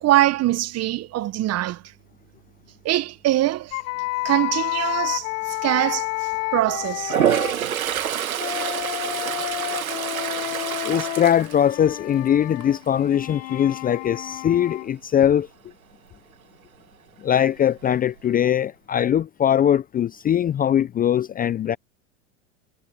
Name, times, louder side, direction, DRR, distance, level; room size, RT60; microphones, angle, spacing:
voice 1, 0.0-1.8 2.8-3.8 4.2-7.2, right 15 dB, 40° right, 1.3 m, -23 dB
sound 1, 3.7-7.6 8.3-14.9, left 25 dB, 65° left, 7.3 m, -30 dB
Toilet flush, 7.0-12.2 12.6-13.0 17.4-17.5 17.8-18.6, right 10 dB, 90° right, 2.0 m, -26 dB
voice 2, 10.8-15.5 17.2-21.8, left 9 dB, 20° left, 0.6 m, -21 dB
hypercardioid pair, 95°, 41 cm